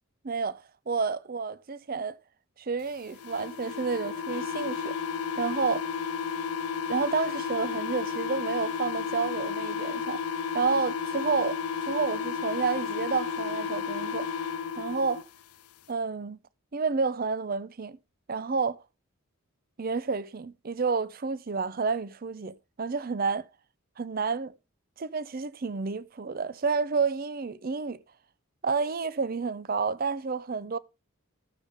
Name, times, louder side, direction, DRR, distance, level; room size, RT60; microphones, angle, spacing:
voice 1, 0.2-2.1 2.6-5.0 5.4-5.9 6.9-10.2 10.5-11.6 11.9-14.3 14.8-15.2 15.9-16.4 16.7-18.0 18.3-18.8 19.8-23.5 24.0-24.5 25.0-28.0 28.6-30.8, right 5 dB, 40° right, 0.5 m, -30 dB
sound 1, 3.1-15.2, left 6 dB, 85° left, 0.5 m, -32 dB
14.5 x 6.8 x 3.5 m
head